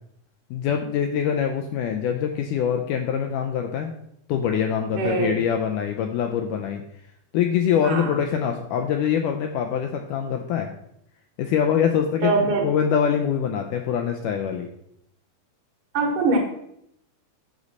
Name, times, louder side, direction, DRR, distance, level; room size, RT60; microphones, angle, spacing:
voice 1, 0.5-3.9 4.3-6.8 7.3-10.7 11.4-12.3 12.6-14.7, left 8 dB, 80° left, 4 dB, 1.9 m, -24 dB
voice 2, 5.0-5.4 7.8-8.1 12.2-12.7 15.9-16.4, right 3 dB, 70° right, 2 dB, 2.7 m, -22 dB
8.2 x 6.3 x 4.0 m, 0.75 s
omnidirectional pair, 4.2 m